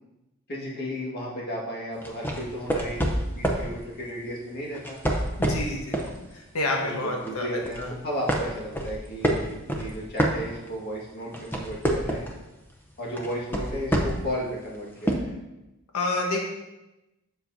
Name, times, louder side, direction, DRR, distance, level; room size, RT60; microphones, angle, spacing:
voice 1, 0.5-5.0 6.8-12.2 13.0-15.4, equal, 45° left, -4 dB, 1.7 m, -34 dB
sound 1, 2.0-3.7 4.7-6.1 6.6-6.8 7.2-7.9 8.3-10.9 11.2-12.4 13.2-14.3 15.1-15.2, equal, 10° left, 0.7 m, -26 dB
voice 2, 5.4-6.2 6.5-7.5 7.8-7.9 15.9-16.4, left 2 dB, 85° left, 0 dB, 1.1 m, -28 dB
7.2 x 6.8 x 2.7 m, 0.97 s
head